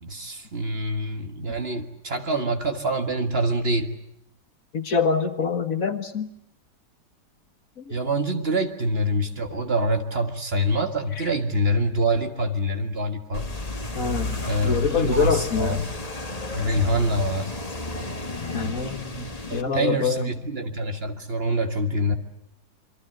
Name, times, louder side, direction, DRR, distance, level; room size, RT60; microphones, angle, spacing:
voice 1, 0.0-3.9 7.9-13.5 14.4-15.8 16.5-17.6 19.7-22.1, equal, 35° right, 7 dB, 1.9 m, -25 dB
voice 2, 4.7-6.3 7.8-7.9 9.5-9.6 11.2-11.3 14.0-15.9 18.5-20.3, left 5 dB, 55° left, 9 dB, 1.9 m, -26 dB
sound 1, 13.3-19.6, left 2 dB, 25° left, 1.8 m, -32 dB
27.0 x 24.5 x 7.9 m, 0.77 s
omnidirectional pair, 1.8 m